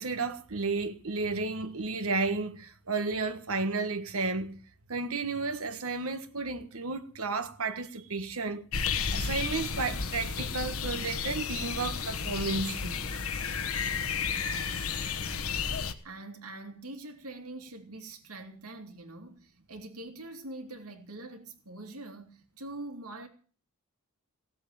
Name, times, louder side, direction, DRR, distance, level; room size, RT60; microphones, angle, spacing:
voice 1, 0.0-4.6 4.9-8.6 9.1-13.0, right 3 dB, 70° right, 1.4 m, -32 dB
sound 1, 8.7-15.9, left 6 dB, 70° left, 1.3 m, -32 dB
voice 2, 14.2-23.3, right 2 dB, 85° right, 2.6 m, -45 dB
17.0 x 7.8 x 9.1 m
head